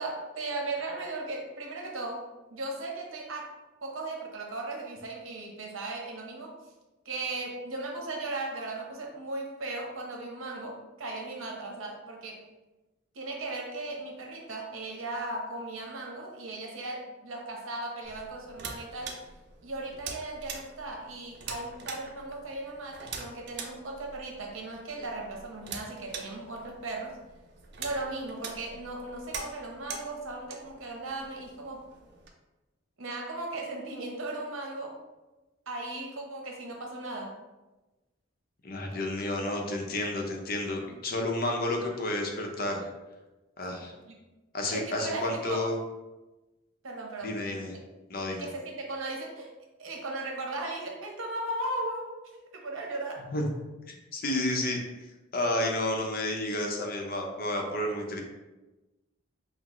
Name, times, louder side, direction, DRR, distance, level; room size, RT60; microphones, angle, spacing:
voice 1, 0.0-3.5 3.8-6.5 7.0-12.4 13.1-19.2 19.6-27.2 27.8-31.8 33.0-35.0 35.7-37.3 43.7-44.1 44.7-45.7 46.8-47.3 48.3-49.5 49.8-53.2, right 2 dB, 80° right, 0 dB, 0.8 m, -37 dB
sound 1, 18.0-32.3, right 5 dB, 55° right, 0.5 m, -44 dB
voice 2, 38.6-42.9 43.6-43.9 44.5-45.8 47.2-47.8 48.1-48.5 53.2-53.4 53.9-58.2, left 1 dB, 45° left, 2 dB, 0.6 m, -31 dB
5.8 x 2.0 x 3.0 m, 1.1 s
head